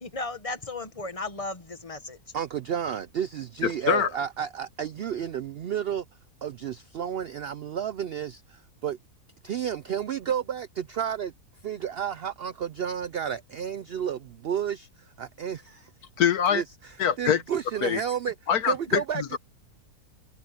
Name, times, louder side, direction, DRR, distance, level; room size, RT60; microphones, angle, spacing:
voice 1, 0.0-2.2, left 3 dB, 25° left, 1.3 m, -35 dB
voice 2, 2.3-6.0 6.4-9.0 9.4-11.3 11.6-15.9 16.5-18.3 18.7-19.4, right 8 dB, 80° right, 0.5 m, -31 dB
voice 3, 3.6-4.1 16.2-16.6 17.0-17.4 17.8-18.0 18.5-19.3, left 8 dB, 75° left, 1.6 m, -24 dB
omnidirectional pair, 1.6 m